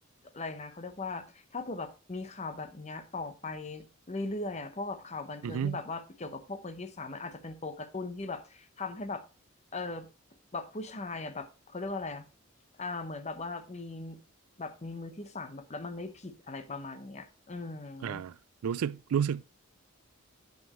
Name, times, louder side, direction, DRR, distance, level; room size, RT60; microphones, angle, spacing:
voice 1, 0.3-9.2 9.7-10.1 10.5-12.3 12.8-14.2 14.6-18.2, left 3 dB, 30° left, 0.8 m, -39 dB
voice 2, 5.4-5.8 18.0-18.3 18.6-19.4, right 8 dB, 85° right, 0.3 m, -31 dB
9.0 x 5.9 x 3.0 m
head